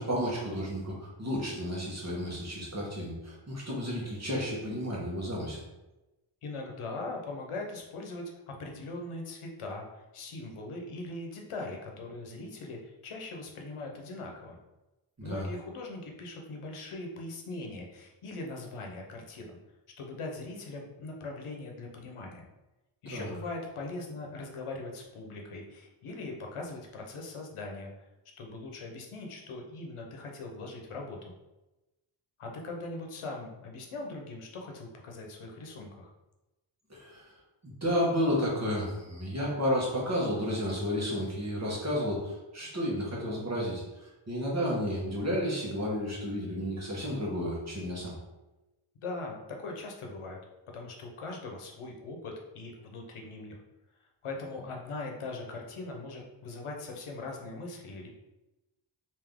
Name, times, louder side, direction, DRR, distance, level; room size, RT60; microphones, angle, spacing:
voice 1, 0.0-5.6 15.2-15.5 23.1-23.3 36.9-37.3 37.6-48.1, equal, 30° right, -4 dB, 1.1 m, -32 dB
voice 2, 6.4-14.6 15.2-19.6 20.0-22.4 23.0-28.1 28.4-31.3 32.4-36.1 49.0-50.4 50.7-53.6 54.2-58.1, left 2 dB, 80° left, 1 dB, 0.8 m, -40 dB
3.5 x 2.7 x 3.5 m, 1.0 s
wide cardioid pair, 125°, 50 cm